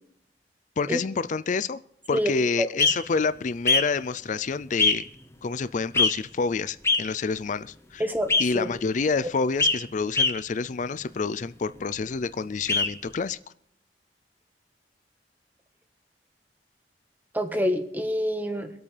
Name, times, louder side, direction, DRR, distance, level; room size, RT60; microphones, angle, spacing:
voice 1, 0.8-1.8 2.1-5.1 5.4-8.0 8.4-13.4, left 4 dB, 45° left, 15 dB, 0.4 m, -28 dB
sound 1, 2.8-2.9 3.7-3.8 4.8-4.9 5.9-6.1 6.8-7.0 8.3-8.4 9.6-9.7 10.1-10.3 12.7-12.9, left 3 dB, 15° left, 0.9 m, -20 dB
voice 2, 8.0-8.7 17.3-18.7, equal, 10° right, 5 dB, 1.4 m, -26 dB
25.5 x 8.5 x 3.4 m, 0.72 s
head